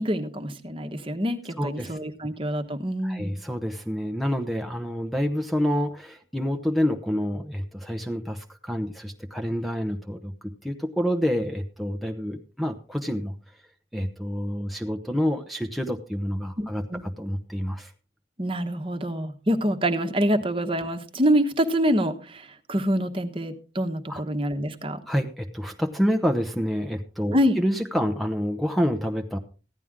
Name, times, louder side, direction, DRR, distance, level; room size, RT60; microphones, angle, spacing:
voice 1, 0.0-3.3 16.6-17.0 18.4-25.0 27.3-27.6, equal, 30° right, 7 dB, 1.2 m, -26 dB
voice 2, 1.6-2.0 3.0-13.3 13.9-17.9 24.1-24.2 25.1-29.4, equal, ahead, 3 dB, 0.8 m, -28 dB
15.5 x 11.0 x 3.7 m, 0.35 s
head